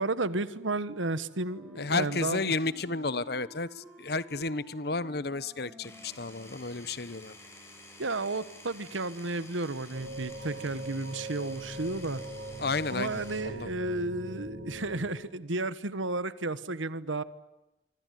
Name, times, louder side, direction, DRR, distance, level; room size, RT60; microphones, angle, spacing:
voice 1, 0.0-2.5 8.0-12.2 12.9-17.2, right 2 dB, 90° right, 16 dB, 1.4 m, -32 dB
Wind instrument woodwind instrument, 1.0-7.1, equal, 10° right, 6.6 m, -53 dB
voice 2, 1.8-7.3 12.6-13.7, left 3 dB, 55° left, 17 dB, 1.1 m, -32 dB
Power tool, 5.8-13.4, left 1 dB, 15° left, 6.2 m, -51 dB
sound 1, 9.9-15.1, right 1 dB, 45° right, 7.3 m, -41 dB
25.5 x 25.0 x 9.3 m, 0.97 s
head